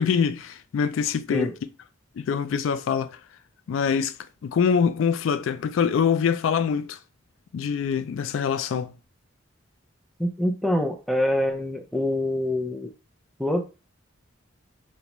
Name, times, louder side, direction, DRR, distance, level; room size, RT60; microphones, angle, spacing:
voice 1, 0.0-1.5 2.2-3.2 3.7-4.1 4.4-7.0 7.5-8.9, left 6 dB, 85° left, 0.3 m, -24 dB
voice 2, 10.2-12.9 13.4-13.7, left 1 dB, ahead, 0.5 m, -25 dB
5.1 x 2.1 x 3.0 m
head